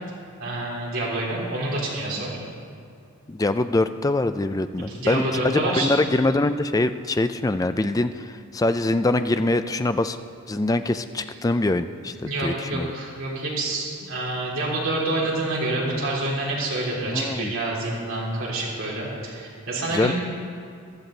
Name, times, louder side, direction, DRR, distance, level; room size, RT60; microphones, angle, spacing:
voice 1, 0.4-2.3 4.8-6.0 12.2-20.1, right 2 dB, 65° right, -5 dB, 3.6 m, -27 dB
voice 2, 3.3-10.2 10.5-12.9 17.1-17.5 19.9-20.1, left 2 dB, 15° left, 10 dB, 0.3 m, -24 dB
15.0 x 12.0 x 4.0 m, 2.4 s
head